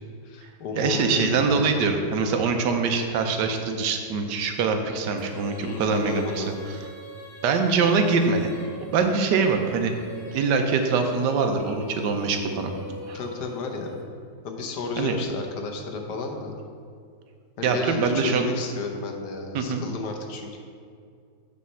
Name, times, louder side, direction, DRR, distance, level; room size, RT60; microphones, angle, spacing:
voice 1, 0.2-1.7 5.6-6.5 13.1-14.1 14.4-16.5 17.6-20.6, left 4 dB, 75° left, 2 dB, 1.4 m, -32 dB
voice 2, 0.8-6.4 7.4-8.5 8.8-10.0 10.3-12.7 13.1-13.2 15.0-15.2 17.6-18.5 19.5-19.8, right 4 dB, 90° right, 5 dB, 1.4 m, -23 dB
Female singing, 5.2-14.3, left 1 dB, 45° left, 0.9 m, -41 dB
8.5 x 4.2 x 5.5 m, 2.3 s
omnidirectional pair, 1.8 m